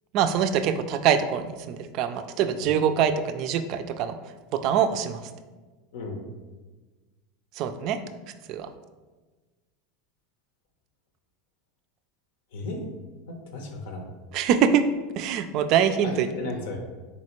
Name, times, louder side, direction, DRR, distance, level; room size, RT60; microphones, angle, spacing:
voice 1, 0.1-4.2 4.6-5.2 7.6-8.0 8.5-8.7 14.3-14.8 15.2-16.3, right 8 dB, 55° right, 9 dB, 0.3 m, -24 dB
voice 2, 5.9-6.2 12.5-12.8 13.3-14.0 16.0-16.8, left 2 dB, 80° left, 3 dB, 0.7 m, -35 dB
4.1 x 3.2 x 3.0 m, 1.3 s
supercardioid pair, 115°, 0 cm